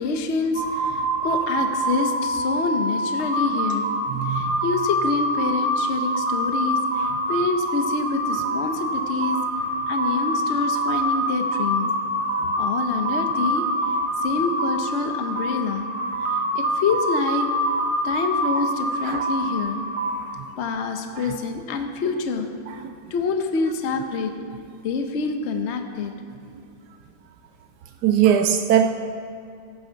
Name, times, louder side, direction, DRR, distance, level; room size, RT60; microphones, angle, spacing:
voice 1, 0.0-3.9 4.2-9.4 9.9-11.9 12.6-13.6 14.2-15.9 16.3-17.5 18.0-19.8 20.6-22.5 23.1-24.3 24.8-26.1, left 4 dB, 55° left, 5 dB, 0.8 m, -26 dB
sound 1, 0.5-20.3, equal, 20° right, 1.1 m, -25 dB
voice 2, 4.1-4.6 19.0-19.2 28.0-28.9, right 9 dB, 80° right, 6 dB, 0.9 m, -20 dB
15.5 x 8.6 x 5.8 m, 2.4 s
omnidirectional pair, 2.3 m